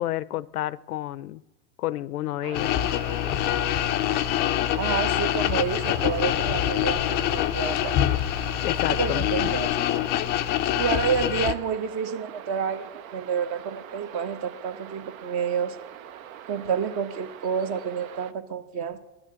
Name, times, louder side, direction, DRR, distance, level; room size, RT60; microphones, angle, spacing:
voice 1, 0.0-1.4 1.8-2.7 8.6-9.2, left 14 dB, 80° left, 22 dB, 0.5 m, -30 dB
sound 1, 2.4-18.3, right 10 dB, 65° right, 0.7 m, -42 dB
sound 2, 2.5-11.5, left 13 dB, 25° left, 0.4 m, -25 dB
voice 2, 4.8-8.0 8.9-9.8 10.7-15.8 16.5-19.0, right 7 dB, 40° right, 11 dB, 1.1 m, -29 dB
12.0 x 6.3 x 7.6 m, 1.1 s
hypercardioid pair, 95°, 45 cm